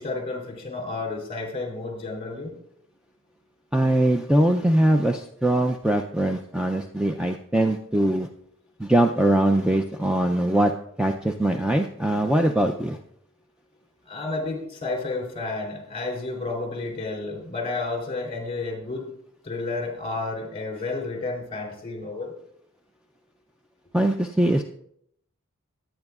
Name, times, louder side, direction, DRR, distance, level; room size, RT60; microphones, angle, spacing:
voice 1, 0.0-2.5 14.1-19.0 19.4-22.3, left 3 dB, 30° left, 1 dB, 3.4 m, -31 dB
voice 2, 3.7-8.3 8.8-10.7 11.0-13.0 23.9-24.6, right 1 dB, 5° right, 4 dB, 0.4 m, -22 dB
21.0 x 8.8 x 2.4 m, 0.70 s
head